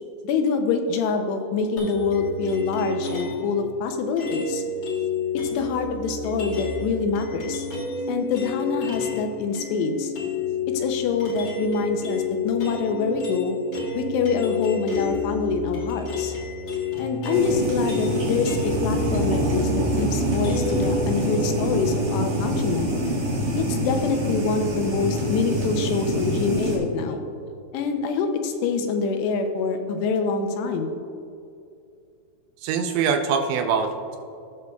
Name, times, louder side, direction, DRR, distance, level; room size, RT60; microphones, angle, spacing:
voice 1, 0.2-4.6 5.5-7.7 8.1-10.1 10.7-13.6 13.9-16.3 17.0-23.0 23.6-27.2 27.7-30.9, left 5 dB, 80° left, 5 dB, 2.6 m, -25 dB
sound 1, 1.8-3.5 4.2-9.2 9.5-21.0, left 3 dB, 60° left, 1.7 m, -30 dB
sound 2, 17.3-26.8, right 1 dB, 45° right, 1.9 m, -26 dB
voice 2, 32.6-34.2, right 6 dB, 80° right, 5 dB, 2.8 m, -23 dB
17.5 x 6.4 x 2.3 m, 2.5 s
omnidirectional pair, 5.0 m